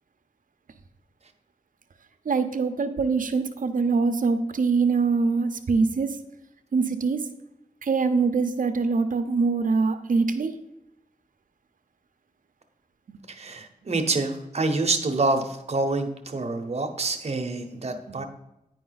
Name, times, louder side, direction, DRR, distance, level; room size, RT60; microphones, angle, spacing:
voice 1, 2.3-6.2 6.7-7.2 7.8-10.5 13.1-13.2 18.1-18.2, right 4 dB, 75° right, 9 dB, 0.7 m, -24 dB
voice 2, 13.3-18.2, right 3 dB, 50° right, 6 dB, 0.9 m, -27 dB
9.3 x 5.0 x 4.0 m, 0.89 s
wide cardioid pair, 85°, 14 cm